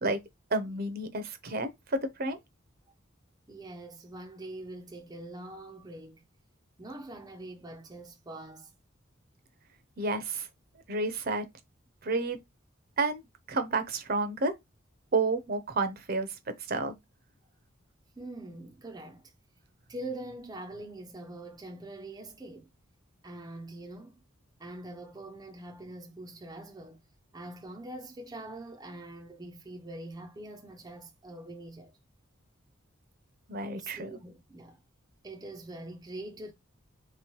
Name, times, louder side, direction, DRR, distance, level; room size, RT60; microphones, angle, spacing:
voice 1, 0.5-2.4 10.0-10.5 10.9-11.5 12.0-12.4 13.0-13.2 13.5-14.5 15.1-16.3 16.7-16.9 33.5-34.1, right 3 dB, 50° right, 0.7 m, -30 dB
voice 2, 3.5-6.2 6.8-8.7 18.2-19.3 19.9-22.7 23.2-24.2 24.6-27.0 27.3-32.0 33.8-34.8 35.2-36.5, right 2 dB, 20° right, 0.5 m, -43 dB
3.1 x 3.1 x 4.5 m
head